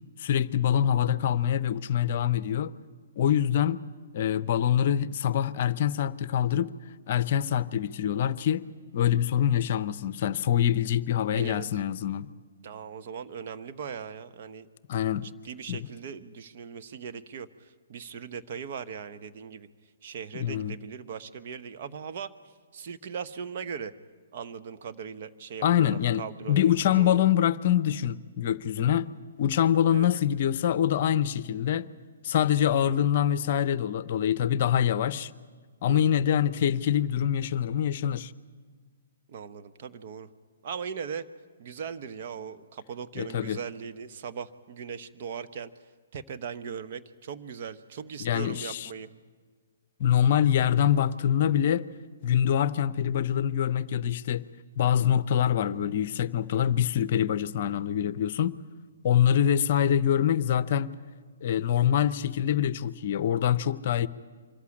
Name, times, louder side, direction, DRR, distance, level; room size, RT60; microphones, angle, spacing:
voice 1, 0.2-2.7 3.2-3.8 4.1-6.7 7.1-8.6 8.9-12.3 14.9-15.3 15.7-15.9 20.3-20.7 25.6-29.1 29.4-31.9 32.2-35.3 35.8-38.3 43.2-43.6 48.2-48.9 50.0-51.9 52.2-54.4 54.8-58.6 59.0-60.9 61.4-64.1, left 10 dB, 50° left, 0.6 m, -25 dB
voice 2, 12.6-14.7 15.2-19.7 20.0-22.3 22.7-23.9 24.3-27.2 29.9-30.1 35.9-36.2 39.3-40.3 40.6-41.3 41.6-45.7 46.1-49.1, right 6 dB, 50° right, 1.0 m, -39 dB
25.0 x 14.0 x 10.0 m
figure-of-eight pair, 125°, 0 cm